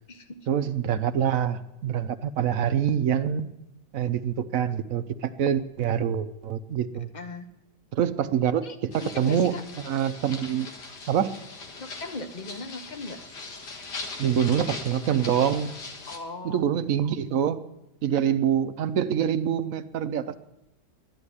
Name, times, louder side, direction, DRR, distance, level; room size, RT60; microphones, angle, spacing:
voice 1, 0.5-3.5 3.9-7.1 7.9-9.5 9.8-10.7 11.1-11.3 14.2-15.7 16.4-17.6 18.0-20.3, right 9 dB, 60° right, 11 dB, 1.0 m, -25 dB
voice 2, 7.1-7.5 8.6-9.6 11.8-13.2 16.1-16.6, left 3 dB, 30° left, 8 dB, 1.0 m, -38 dB
sound 1, 8.9-16.2, left 3 dB, 70° left, 2.2 m, -40 dB
11.5 x 10.5 x 9.8 m, 0.90 s
omnidirectional pair, 1.9 m